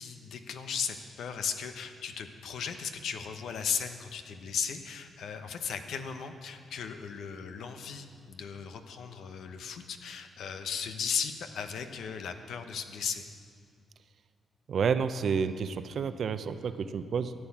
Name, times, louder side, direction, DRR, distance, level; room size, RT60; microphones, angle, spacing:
voice 1, 0.0-13.2, left 6 dB, 75° left, 7 dB, 0.9 m, -36 dB
voice 2, 14.7-17.3, right 6 dB, 60° right, 11 dB, 0.6 m, -30 dB
14.0 x 8.9 x 7.3 m, 2.2 s
cardioid pair, 115°, 0 cm